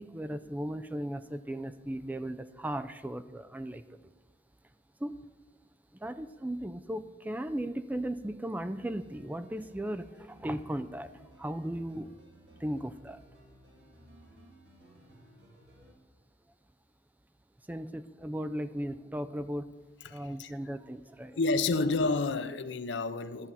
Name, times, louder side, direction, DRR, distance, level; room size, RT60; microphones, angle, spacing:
voice 1, 0.0-3.8 5.0-5.2 6.0-11.1 11.4-12.1 12.6-13.2 17.7-19.7 20.1-21.4, right 1 dB, 10° right, 0.3 m, -36 dB
sound 1, 8.8-15.9, right 1 dB, 75° right, 2.2 m, -58 dB
voice 2, 20.0-20.5 21.4-23.5, left 3 dB, 90° left, 0.5 m, -30 dB
11.5 x 7.5 x 5.5 m
head